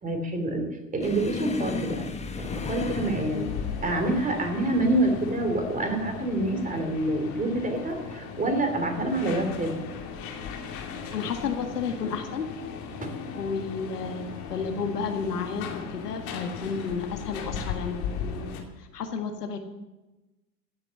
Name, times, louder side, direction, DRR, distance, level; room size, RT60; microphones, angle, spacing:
voice 1, 0.0-2.1 2.4-3.4 3.8-9.8 13.0-13.1, right 1 dB, 15° right, 5 dB, 3.3 m, -27 dB
sound 1, 1.0-8.2 8.5-8.9 9.2-9.4 10.2-10.8 11.8-12.0 13.3-13.5, left 4 dB, 15° left, 1.5 m, -37 dB
sound 2, 2.4-18.6, left 6 dB, 45° left, 2.9 m, -37 dB
voice 2, 11.1-12.5 13.3-19.6, left 5 dB, 75° left, 6 dB, 1.8 m, -32 dB
16.0 x 8.9 x 7.2 m, 1.1 s
figure-of-eight pair, 90°, 48 cm